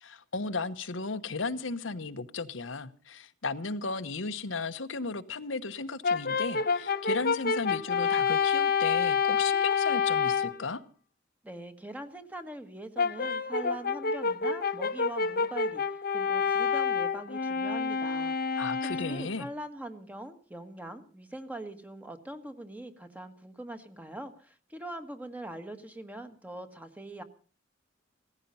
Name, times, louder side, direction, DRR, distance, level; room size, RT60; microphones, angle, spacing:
voice 1, 0.0-10.8 18.6-19.5, left 4 dB, 80° left, 1.1 m, -35 dB
Brass instrument, 6.0-10.6 13.0-19.3, left 5 dB, 50° left, 1.0 m, -28 dB
voice 2, 11.4-27.2, right 1 dB, 10° right, 1.5 m, -42 dB
17.0 x 15.0 x 5.6 m
head